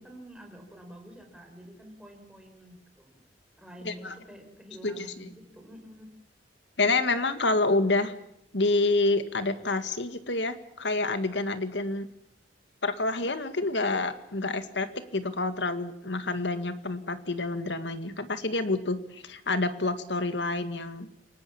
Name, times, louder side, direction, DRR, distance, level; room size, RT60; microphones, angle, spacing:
voice 1, 0.0-3.2 3.6-6.1, equal, 5° right, 3 dB, 5.4 m, -48 dB
voice 2, 4.8-5.3 6.8-8.1 8.5-12.1 12.8-21.1, left 2 dB, 80° left, 10 dB, 2.0 m, -28 dB
29.5 x 18.5 x 7.2 m, 0.78 s
head